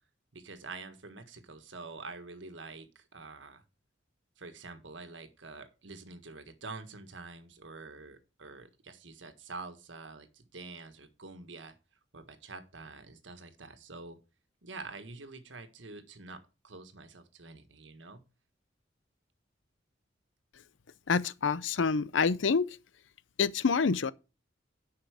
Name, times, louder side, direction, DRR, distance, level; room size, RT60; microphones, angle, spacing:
voice 1, 0.3-3.6 4.4-11.7 12.1-14.2 14.6-18.2, right 3 dB, 80° right, 1.5 m, -46 dB
voice 2, 21.1-22.8 23.4-24.1, left 5 dB, 85° left, 0.6 m, -27 dB
10.5 x 5.8 x 4.8 m
head